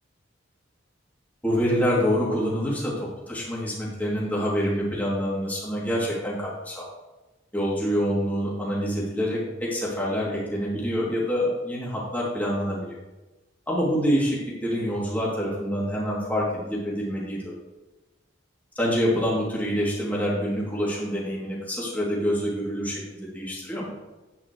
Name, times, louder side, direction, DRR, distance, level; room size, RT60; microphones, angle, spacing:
voice 1, 1.4-2.9 3.3-6.9 7.5-12.9 13.7-17.6 18.8-23.9, equal, 10° left, -6 dB, 2.8 m, -26 dB
10.0 x 9.6 x 3.2 m, 1.1 s
head